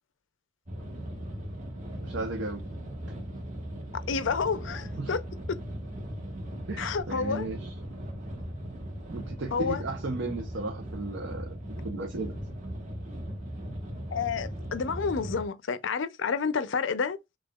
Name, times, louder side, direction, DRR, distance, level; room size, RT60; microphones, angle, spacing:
sound 1, 0.7-15.4, right 1 dB, 40° right, 1.4 m, -38 dB
voice 1, 2.0-2.6 5.0-5.2 6.7-7.7 9.1-11.5 11.8-12.3, right 2 dB, 65° right, 0.7 m, -35 dB
voice 2, 4.1-5.2 5.5-5.6 6.8-7.5 9.5-9.8 14.1-17.2, left 5 dB, 70° left, 0.5 m, -29 dB
6.3 x 2.3 x 2.3 m
head